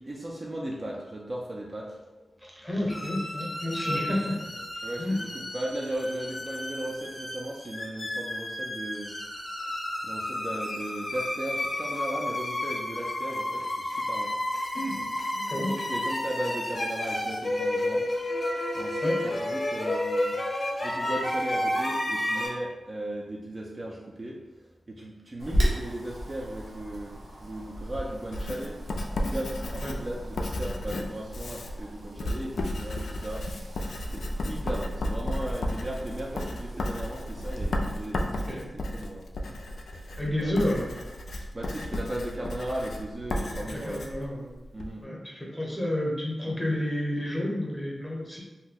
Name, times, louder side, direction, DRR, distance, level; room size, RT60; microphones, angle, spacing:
voice 1, 0.1-1.9 3.8-4.0 4.8-9.2 10.0-14.3 15.0-15.1 15.5-18.0 18.7-20.4 20.8-28.8 29.2-33.5 34.1-38.6 38.9-40.1 40.4-40.6 41.5-44.0 44.7-45.1, right 1 dB, 35° right, -3 dB, 0.4 m, -36 dB
voice 2, 2.4-5.2 14.7-15.0 15.3-15.7 19.0-19.2 25.5-25.6 29.8-30.0 38.5-38.7 40.2-40.9 43.7-44.5 45.0-48.4, left 1 dB, 5° left, -3 dB, 0.8 m, -30 dB
sound 1, 2.9-22.5, left 1 dB, 45° left, 0.6 m, -31 dB
Wind, 25.4-37.7, equal, 90° right, 0.8 m, -35 dB
Writing, 28.3-44.9, left 1 dB, 85° left, 0.3 m, -34 dB
2.6 x 2.1 x 3.8 m, 1.1 s
wide cardioid pair, 115°, 0 cm